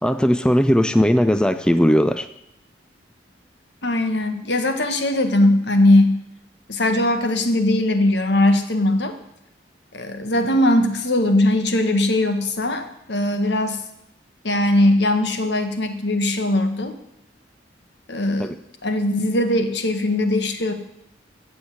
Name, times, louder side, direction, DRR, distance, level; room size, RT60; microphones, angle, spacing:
voice 1, 0.0-2.3 18.4-18.5, equal, 5° left, 11 dB, 0.4 m, -18 dB
voice 2, 3.8-6.2 6.7-9.1 9.9-13.8 14.4-16.9 18.1-18.5 18.8-20.7, left 1 dB, 75° left, 7 dB, 1.6 m, -20 dB
15.0 x 7.4 x 7.8 m, 0.82 s
head